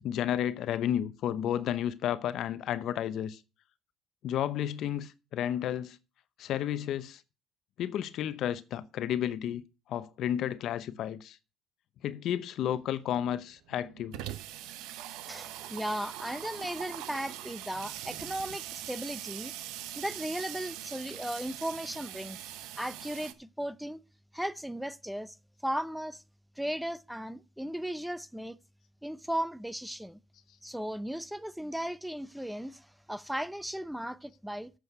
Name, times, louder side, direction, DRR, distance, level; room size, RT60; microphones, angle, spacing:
voice 1, 0.0-3.4 4.2-6.0 6.4-7.2 7.8-11.4 12.0-14.2, left 10 dB, 65° left, 0.8 m, -32 dB
Water tap faucet / Sink (filling or washing), 12.7-12.8 13.1-13.2 13.4-23.3, right 12 dB, 85° right, 0.8 m, -42 dB
voice 2, 15.3-19.5 19.9-22.4 22.8-24.0 24.3-25.3 25.6-26.2 26.6-28.6 29.0-30.2 30.6-34.7, equal, 5° right, 0.6 m, -36 dB
8.1 x 6.4 x 7.9 m
cardioid pair, 90°, 0 cm